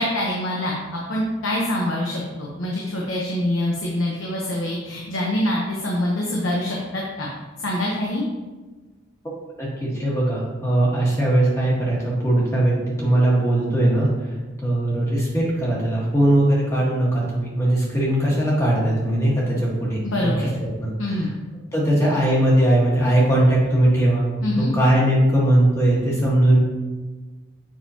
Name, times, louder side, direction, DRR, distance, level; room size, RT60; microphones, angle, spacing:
voice 1, 0.0-7.3 7.6-8.2 20.0-20.5 21.0-21.3 24.4-24.7, left 1 dB, 80° left, -2 dB, 1.0 m, -25 dB
voice 2, 9.6-14.3 14.6-20.3 20.6-21.2 21.7-24.3 24.7-26.6, right 1 dB, 15° left, -5 dB, 1.4 m, -20 dB
7.7 x 5.5 x 2.9 m, 1.3 s
head